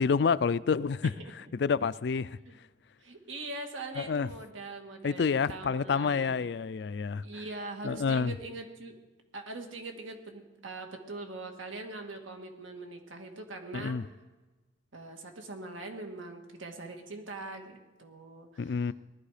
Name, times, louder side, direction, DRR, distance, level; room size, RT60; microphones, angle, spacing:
voice 1, 0.0-1.1 1.5-2.4 4.0-4.3 5.0-7.4 7.8-8.4 13.7-14.0 18.6-18.9, left 5 dB, 60° left, 0.4 m, -28 dB
voice 2, 3.0-6.4 7.2-8.9 9.3-14.0 14.9-18.9, right 2 dB, 85° right, 2.0 m, -42 dB
19.5 x 12.5 x 5.0 m
head